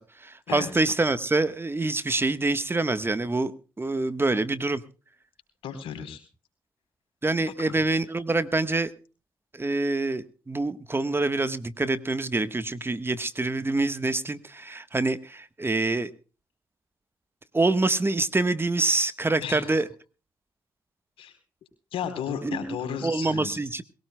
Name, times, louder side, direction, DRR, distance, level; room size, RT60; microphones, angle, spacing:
voice 1, 0.0-4.8 7.2-8.9 9.5-16.1 17.5-19.9 22.4-22.8 23.0-23.8, right 2 dB, 25° right, 12 dB, 1.3 m, -26 dB
voice 2, 5.6-6.2 7.6-7.7 19.4-19.7 21.2-21.3 21.9-23.6, left 7 dB, 80° left, 6 dB, 3.9 m, -34 dB
22.0 x 17.5 x 2.2 m, 0.35 s
supercardioid pair, 50°, 9 cm